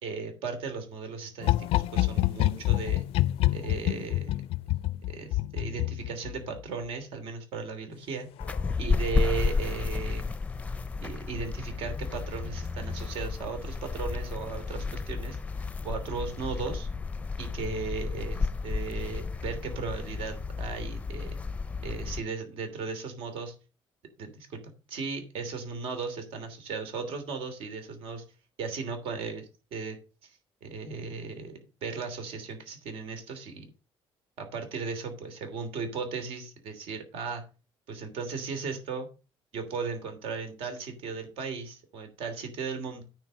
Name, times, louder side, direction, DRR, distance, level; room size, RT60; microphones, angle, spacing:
voice 1, 0.0-3.0 3.5-4.4 5.1-8.3 8.8-10.2 11.0-15.4 15.8-16.9 17.4-21.4 21.8-23.5 24.2-24.6 24.9-28.2 28.6-30.0 30.2-30.3 30.6-33.7 34.4-37.4 37.9-39.1 39.5-43.0, right 5 dB, 70° right, 6 dB, 2.9 m, -36 dB
sound 1, 1.4-6.6 8.4-8.7 9.0-9.1, left 17 dB, 75° left, 0.4 m, -27 dB
sound 2, 8.4-22.2, left 4 dB, 15° left, 0.6 m, -32 dB
9.5 x 4.7 x 6.4 m, 0.33 s
cardioid pair, 145°, 10 cm